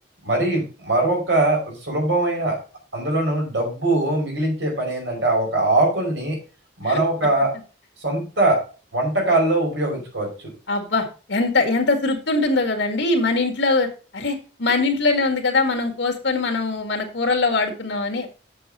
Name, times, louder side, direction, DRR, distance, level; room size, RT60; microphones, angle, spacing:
voice 1, 0.2-2.6 2.9-6.4 6.8-7.5 8.0-8.6 8.9-10.5, right 2 dB, 90° right, -1 dB, 5.3 m, -21 dB
voice 2, 10.7-13.9 14.1-18.3, left 3 dB, 90° left, 3 dB, 2.0 m, -22 dB
7.6 x 6.5 x 5.4 m, 0.35 s
head